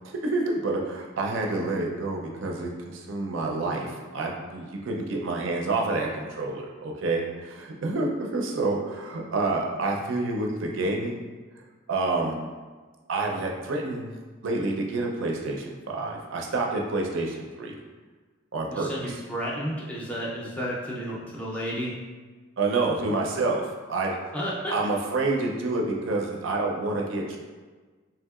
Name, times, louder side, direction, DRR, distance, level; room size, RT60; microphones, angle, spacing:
voice 1, 0.0-11.2 11.9-12.4 13.1-14.1 14.4-17.7 18.5-19.1 22.6-23.6 23.9-24.2 24.7-27.4, right 2 dB, 75° right, 0 dB, 0.5 m, -28 dB
voice 2, 18.7-21.9 24.3-24.7, equal, 5° left, -6 dB, 0.4 m, -32 dB
3.4 x 2.7 x 2.3 m, 1.4 s
head